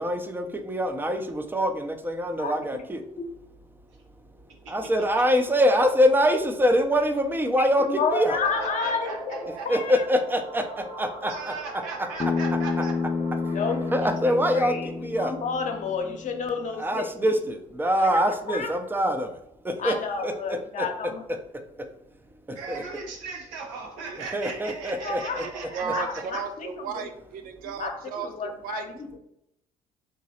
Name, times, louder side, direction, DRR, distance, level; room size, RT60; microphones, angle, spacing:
voice 1, 0.0-3.0 4.7-8.4 9.7-11.8 13.9-15.3 16.8-19.3 19.6-20.0 20.2-20.3 20.8-20.9 22.7-22.8 24.3-25.4, equal, 10° right, 6 dB, 0.6 m, -24 dB
voice 2, 7.6-10.0 13.5-13.8 14.5-14.9 15.2-17.1 18.0-18.1 18.5-18.7 19.8-21.2 25.0-25.4 25.8-27.0 27.8-29.1, left 5 dB, 50° left, 4 dB, 0.8 m, -31 dB
sound 1, 8.4-15.0, right 2 dB, 45° right, 1.4 m, -40 dB
voice 3, 8.4-9.7 11.3-12.9 22.5-26.4, right 4 dB, 85° right, 1 dB, 0.8 m, -37 dB
Bass guitar, 12.2-16.5, left 4 dB, 30° left, 0.4 m, -30 dB
voice 4, 25.4-28.9, right 7 dB, 65° right, 7 dB, 0.5 m, -35 dB
3.8 x 3.0 x 2.8 m, 0.78 s
hypercardioid pair, 60°, 16 cm